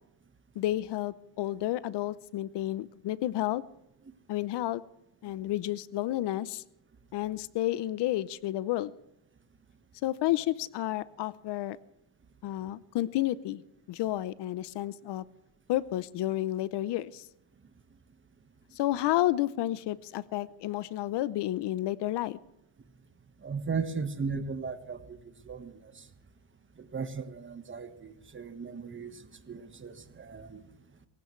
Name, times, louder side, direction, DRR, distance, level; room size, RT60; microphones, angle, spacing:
voice 1, 0.6-3.6 4.3-4.8 5.2-6.6 7.1-8.9 10.0-11.8 12.4-13.6 13.9-15.2 15.7-17.3 18.8-22.4, left 14 dB, 70° left, 18 dB, 0.8 m, -31 dB
voice 2, 23.4-25.2 25.5-25.7 26.9-29.2 29.5-30.6, right 5 dB, 30° right, 10 dB, 1.4 m, -36 dB
26.5 x 15.5 x 3.2 m, 0.84 s
cardioid pair, 105°, 42 cm